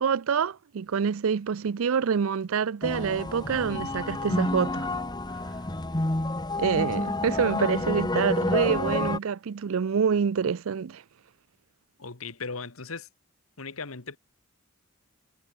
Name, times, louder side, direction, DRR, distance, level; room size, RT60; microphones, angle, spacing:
voice 1, 0.0-4.9 6.6-11.0, right 6 dB, 75° right, 0.5 m, -26 dB
sound 1, 2.8-9.2, left 2 dB, 20° left, 1.0 m, -29 dB
voice 2, 12.0-13.1 13.6-14.2, left 4 dB, 85° left, 1.7 m, -37 dB
head